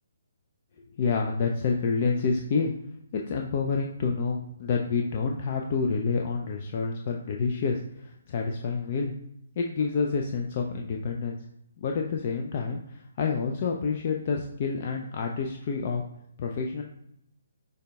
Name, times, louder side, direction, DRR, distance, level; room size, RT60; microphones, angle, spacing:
voice 1, 1.0-2.7 3.1-9.1 9.6-11.4 11.8-16.0 16.4-16.8, left 5 dB, 40° left, 2 dB, 0.3 m, -28 dB
6.3 x 2.2 x 2.2 m, 0.75 s
figure-of-eight pair, 135°, 0 cm